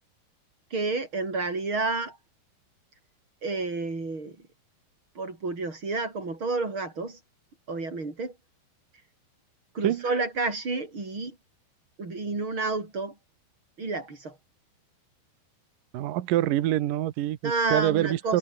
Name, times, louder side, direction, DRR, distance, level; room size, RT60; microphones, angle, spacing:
voice 1, 0.7-2.2 3.4-4.4 5.1-7.2 7.7-8.3 9.7-11.4 12.0-13.1 13.8-14.4 17.4-18.4, right 3 dB, 30° right, 6.6 m, -30 dB
voice 2, 15.9-18.4, right 14 dB, 65° right, 2.6 m, -26 dB
omnidirectional pair, 4.8 m